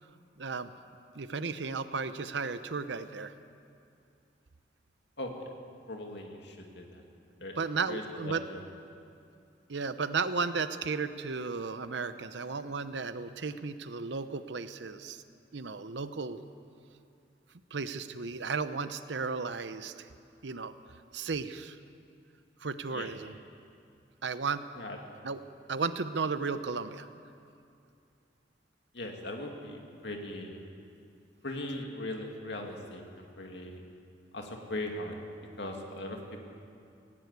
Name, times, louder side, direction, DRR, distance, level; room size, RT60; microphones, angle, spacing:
voice 1, 0.4-0.7 1.1-3.3 7.6-8.4 9.7-15.2 15.5-16.4 17.7-20.1 20.4-20.7 21.1-21.8 22.6-23.4 24.2-24.7 25.2-25.4 25.7-27.1, right 4 dB, 70° right, 11 dB, 0.8 m, -34 dB
voice 2, 5.2-5.5 5.9-7.0 7.4-7.6 7.9-8.6 22.9-23.1 24.8-25.0 28.9-30.6 31.4-33.8 34.3-35.1 35.6-36.2, left 1 dB, 65° left, 2 dB, 2.4 m, -39 dB
18.5 x 17.5 x 8.3 m, 2.6 s
head